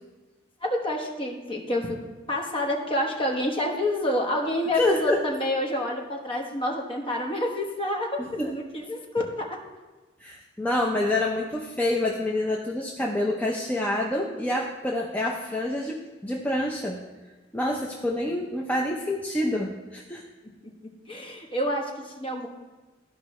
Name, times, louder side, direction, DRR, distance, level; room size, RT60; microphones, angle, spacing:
voice 1, 0.6-2.0 2.3-9.6 21.1-22.5, left 1 dB, 30° left, 1 dB, 1.1 m, -28 dB
voice 2, 4.7-5.2 8.2-8.5 10.2-17.0 17.5-20.2, left 1 dB, 10° left, -2 dB, 0.6 m, -27 dB
13.5 x 5.2 x 3.1 m, 1.2 s
head